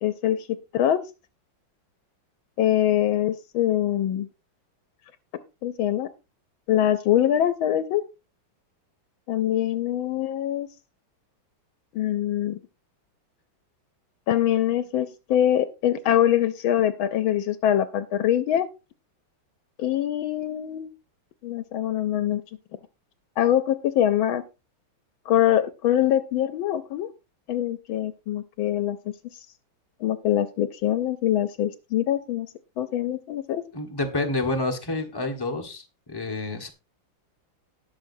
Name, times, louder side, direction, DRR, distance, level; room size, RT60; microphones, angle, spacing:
voice 1, 0.0-1.0 2.6-4.3 5.6-6.1 6.7-8.0 9.3-10.7 11.9-12.6 14.3-18.7 19.8-20.9 21.4-22.4 23.4-24.4 25.3-27.1 27.5-29.0 29.3-29.4 30.0-32.5 32.8-33.6, left 11 dB, 80° left, 12 dB, 1.5 m, -23 dB
voice 2, 33.7-36.7, left 2 dB, 15° left, 4 dB, 1.1 m, -28 dB
18.5 x 6.3 x 2.7 m, 0.28 s
omnidirectional pair, 2.2 m